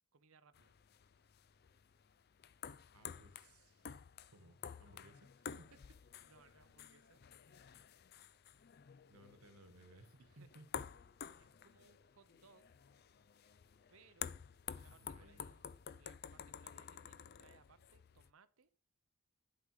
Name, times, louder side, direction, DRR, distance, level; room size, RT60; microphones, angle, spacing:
voice 1, 0.1-0.8 6.2-7.2 10.3-10.5 11.4-12.7 13.9-14.4 14.7-15.7 16.0-18.7, right 5 dB, 70° right, 13 dB, 0.7 m, -67 dB
sound 1, 0.5-18.3, left 8 dB, 45° left, 0.4 m, -51 dB
voice 2, 2.9-3.9 4.3-5.3 5.6-6.0 9.1-10.8 14.9-15.5, right 1 dB, 85° right, 9 dB, 1.5 m, -62 dB
11.5 x 5.1 x 4.8 m, 0.42 s
head